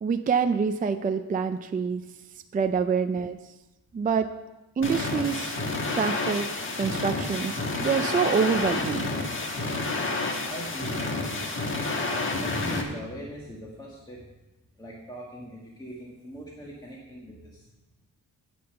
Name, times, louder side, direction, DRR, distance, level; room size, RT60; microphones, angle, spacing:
voice 1, 0.0-2.0 2.5-3.4 3.9-4.3 4.8-5.5 5.9-6.5 6.8-9.1, right 6 dB, 25° right, 8 dB, 0.4 m, -26 dB
sound 1, 4.8-12.8, left 3 dB, 35° left, 1.4 m, -29 dB
voice 2, 10.4-11.5 12.0-14.2 14.8-17.7, right 1 dB, 10° left, -3 dB, 1.6 m, -41 dB
9.5 x 8.7 x 6.7 m, 1.0 s
wide cardioid pair, 170°, 35 cm